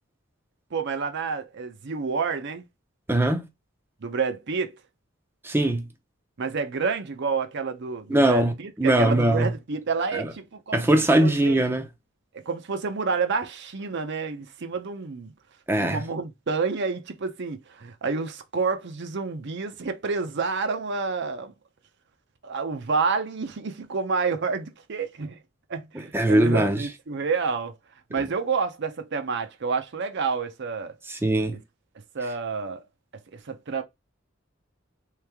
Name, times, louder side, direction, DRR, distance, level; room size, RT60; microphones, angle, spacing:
voice 1, 0.7-2.7 4.0-4.8 6.4-10.9 11.2-11.6 12.3-15.3 15.8-21.5 22.4-25.4 25.7-27.8 28.1-31.0 31.5-31.6 32.1-32.8 33.3-33.8, right 4 dB, 60° right, 0.6 m, -29 dB
voice 2, 3.1-3.4 5.4-5.9 8.1-8.5 8.8-9.5 10.1-10.3 10.7-11.9 15.7-16.0 26.1-26.8 31.1-31.6, right 1 dB, 10° right, 0.6 m, -21 dB
3.3 x 3.2 x 3.4 m
head